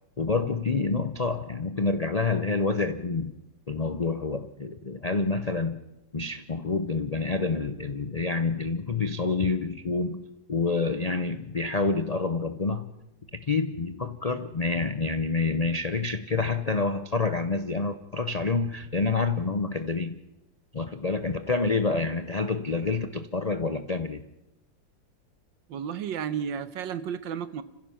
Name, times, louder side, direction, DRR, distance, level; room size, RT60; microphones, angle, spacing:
voice 1, 0.2-3.3 3.7-5.8 6.1-12.9 13.3-20.2 20.7-24.2, left 3 dB, 65° left, 10 dB, 0.4 m, -28 dB
voice 2, 25.7-27.6, right 8 dB, 90° right, 13 dB, 1.7 m, -32 dB
30.0 x 15.5 x 5.8 m, 0.91 s
omnidirectional pair, 2.0 m